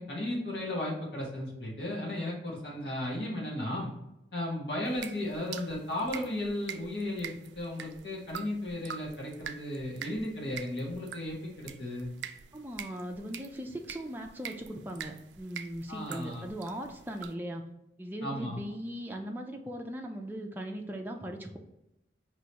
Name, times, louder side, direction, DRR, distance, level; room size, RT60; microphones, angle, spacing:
voice 1, 0.0-3.9 4.3-12.1 15.9-16.5 18.2-18.6, left 1 dB, 70° left, -4 dB, 1.4 m, -35 dB
sound 1, 4.9-17.3, right 8 dB, 85° right, 0.4 m, -46 dB
voice 2, 12.5-17.6 18.0-21.6, right 1 dB, 10° right, 2 dB, 0.4 m, -39 dB
4.7 x 3.0 x 2.9 m, 0.88 s
head